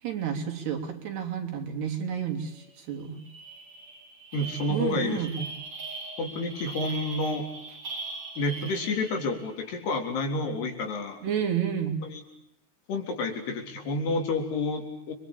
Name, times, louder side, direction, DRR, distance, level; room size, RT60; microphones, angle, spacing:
voice 1, 0.0-3.2 4.7-5.3 11.2-12.0, right 8 dB, 85° right, 3 dB, 5.6 m, -30 dB
sound 1, 2.6-2.7 3.0-9.4, right 3 dB, 45° right, 7.6 m, -40 dB
voice 2, 4.3-5.5 6.2-7.5 8.4-11.2 12.1-12.2 12.9-15.1, left 2 dB, 90° left, 4 dB, 5.8 m, -29 dB
30.0 x 23.0 x 8.6 m, 0.81 s
omnidirectional pair, 4.5 m